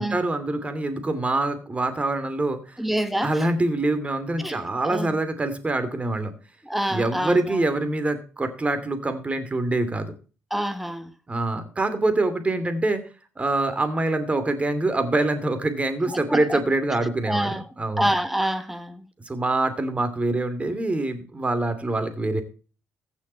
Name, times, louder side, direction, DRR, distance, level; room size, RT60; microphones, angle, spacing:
voice 1, 0.0-2.8 3.2-6.3 6.9-10.1 11.3-13.0 13.4-18.1 19.3-22.4, right 2 dB, 20° right, 2.7 m, -25 dB
voice 2, 2.8-3.4 4.4-5.2 6.6-7.6 10.5-11.1 16.1-16.6 17.2-17.6 18.0-19.1, right 1 dB, 5° right, 1.4 m, -27 dB
15.0 x 6.3 x 4.5 m
cardioid pair, 90°, 6 cm